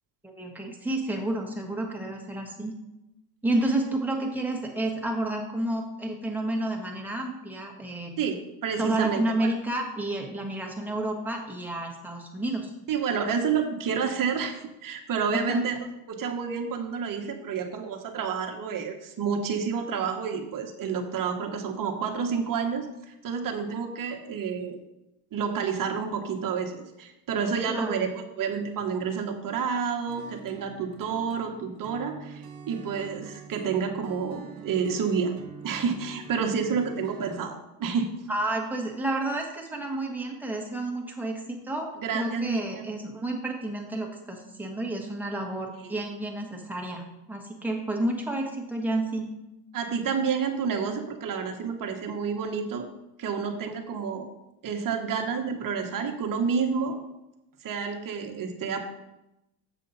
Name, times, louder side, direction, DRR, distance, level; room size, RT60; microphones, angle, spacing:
voice 1, 0.2-2.7 3.4-8.1 8.8-12.7 15.3-15.6 27.7-27.9 38.3-49.3, right 1 dB, 5° right, 0 dB, 1.5 m, -30 dB
voice 2, 8.2-9.5 12.9-22.9 23.2-24.8 25.3-35.3 35.6-38.1 42.0-42.8 45.8-45.9 49.7-52.9 53.2-54.3 54.6-57.0 57.6-58.8, right 6 dB, 40° right, 2 dB, 1.4 m, -29 dB
sound 1, 30.1-37.4, right 6 dB, 65° right, 1.4 m, -46 dB
7.4 x 6.8 x 4.1 m, 0.91 s
cardioid pair, 115°, 49 cm